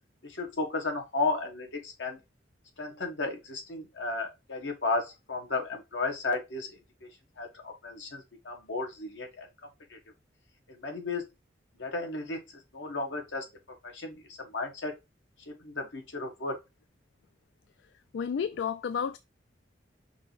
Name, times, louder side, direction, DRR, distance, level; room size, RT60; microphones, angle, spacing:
voice 1, 0.2-2.2 2.8-7.1 7.4-9.5 9.9-10.0 10.7-11.3 11.8-12.4 12.7-13.4 13.8-14.9 15.5-16.6, left 3 dB, 90° left, 1.5 m, -34 dB
voice 2, 18.1-19.2, left 7 dB, 70° left, 0.3 m, -31 dB
5.7 x 2.8 x 3.2 m
head